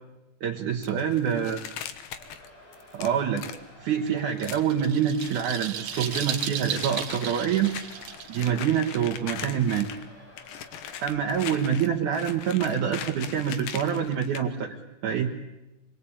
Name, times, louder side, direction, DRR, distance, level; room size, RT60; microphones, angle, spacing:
voice 1, 0.4-1.6 2.9-3.5 3.8-7.7 8.3-9.9 11.0-15.3, right 8 dB, 65° right, 1 dB, 2.7 m, -26 dB
sound 1, 0.8-3.7 4.4-4.7 5.2-5.6 5.9-10.1 10.4-14.4, left 9 dB, 90° left, 3.0 m, -40 dB
sound 2, 2.1-11.8, left 1 dB, 55° left, 9.4 m, -51 dB
sound 3, 4.1-9.9, right 9 dB, 85° right, 3.1 m, -35 dB
25.5 x 22.5 x 8.6 m, 0.98 s
omnidirectional pair, 3.8 m